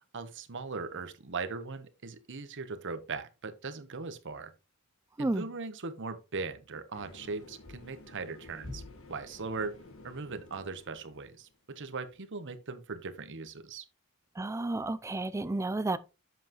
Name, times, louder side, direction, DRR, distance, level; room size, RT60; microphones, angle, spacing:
voice 1, 0.1-4.5 5.2-8.8 9.1-9.7 10.0-13.8, right 4 dB, 60° right, 1.0 m, -39 dB
sound 1, 6.9-11.5, left 2 dB, 65° left, 1.8 m, -50 dB
voice 2, 14.4-16.0, right 2 dB, 15° right, 0.4 m, -31 dB
7.8 x 7.3 x 3.0 m
head